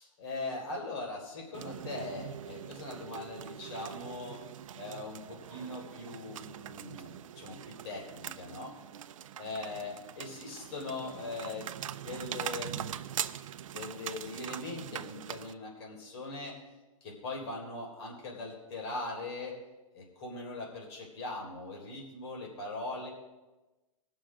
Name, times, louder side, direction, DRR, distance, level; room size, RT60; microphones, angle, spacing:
voice 1, 0.2-4.4 4.7-8.8 9.4-11.8 12.1-13.0 13.7-16.6 17.0-19.6 19.9-23.1, left 2 dB, 50° left, -1 dB, 3.5 m, -40 dB
sound 1, 1.5-15.5, right 10 dB, 70° right, 0.5 m, -42 dB
18.0 x 6.3 x 5.0 m, 1.1 s
hypercardioid pair, 125°, 18 cm